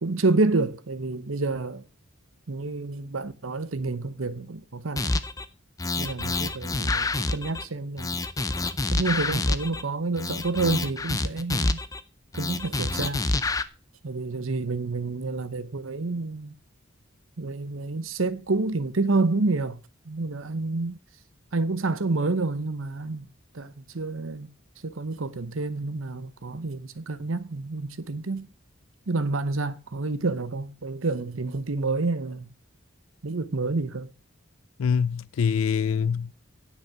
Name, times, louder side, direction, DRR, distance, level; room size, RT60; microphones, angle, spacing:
voice 1, 0.0-1.8 2.5-5.2 6.0-8.1 8.9-11.8 12.3-13.2 14.0-16.6 17.4-19.8 20.1-21.0 21.5-23.3 23.5-24.5 24.8-28.5 29.1-32.5 33.2-34.1, right 3 dB, 80° right, 0.9 m, -28 dB
sound 1, 5.0-5.4 5.8-7.6 8.0-9.8 10.2-12.0 12.3-13.6, left 2 dB, 15° left, 0.5 m, -27 dB
voice 2, 34.8-36.3, left 6 dB, 85° left, 0.4 m, -24 dB
9.8 x 5.9 x 5.9 m
head